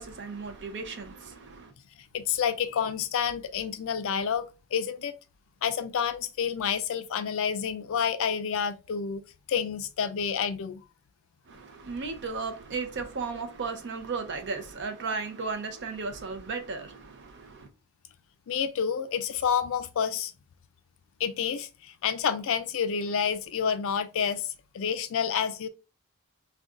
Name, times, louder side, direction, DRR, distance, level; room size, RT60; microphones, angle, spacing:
voice 1, 0.0-1.7 11.5-17.7, right 4 dB, 50° right, 0.6 m, -35 dB
voice 2, 2.1-5.1 5.6-9.2 9.5-10.8 18.5-20.3 21.2-25.7, left 7 dB, 60° left, 0.4 m, -29 dB
2.5 x 2.3 x 3.7 m
head